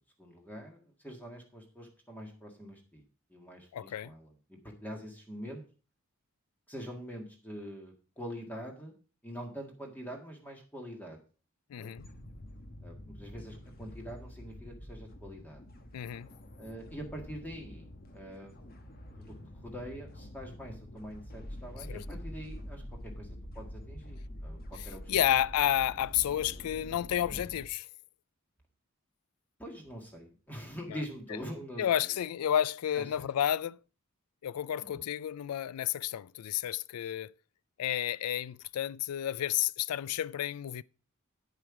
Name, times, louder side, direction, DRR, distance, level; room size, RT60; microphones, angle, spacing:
voice 1, 0.2-3.0 3.3-5.6 6.7-8.9 9.2-11.2 11.8-11.9 12.8-15.6 16.6-18.5 19.2-19.3 19.6-25.2 27.3-27.5 29.6-32.2 32.9-33.3 34.8-35.0, equal, 10° left, 1.6 m, -44 dB
voice 2, 3.7-4.1 11.7-12.1 15.9-16.3 21.9-22.0 25.1-27.8 30.9-31.0 31.8-33.8 34.4-37.3 37.8-40.8, left 11 dB, 90° left, 0.3 m, -31 dB
sound 1, 12.0-27.7, equal, 40° left, 1.3 m, -46 dB
8.8 x 7.7 x 4.9 m
head